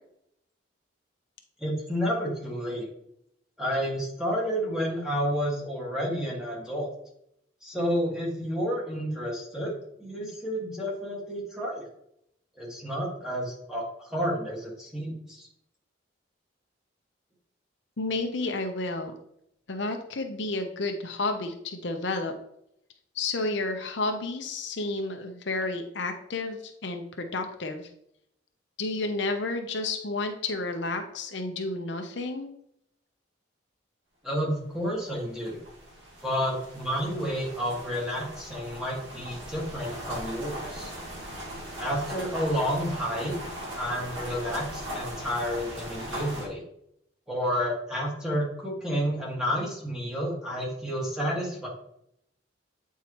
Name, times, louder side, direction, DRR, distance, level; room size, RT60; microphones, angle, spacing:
voice 1, 1.6-2.9 3.6-6.9 7.6-9.7 10.0-11.9 12.6-15.5 34.2-35.6 36.2-40.9 41.8-43.3 43.8-46.6 47.3-51.7, equal, 5° right, -4 dB, 1.7 m, -30 dB
voice 2, 18.0-19.1 19.7-22.3 23.1-27.9 28.8-32.5, left 2 dB, 65° left, 5 dB, 0.7 m, -31 dB
sound 1, 35.0-46.5, equal, 90° right, 2.0 m, -39 dB
8.6 x 4.6 x 3.0 m, 0.74 s
head